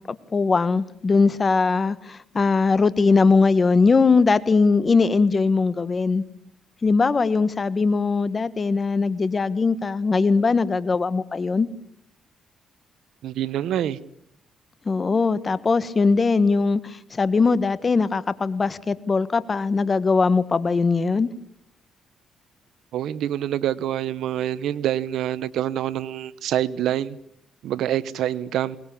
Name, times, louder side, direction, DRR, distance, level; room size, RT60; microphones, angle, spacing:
voice 1, 0.3-6.2 6.8-11.7 14.9-16.8 17.2-21.3, left 4 dB, 35° left, 1.4 m, -20 dB
voice 2, 13.2-14.0 22.9-27.2 27.6-28.8, right 11 dB, 80° right, 1.0 m, -26 dB
22.0 x 20.5 x 8.6 m
cardioid pair, 90°, 0 cm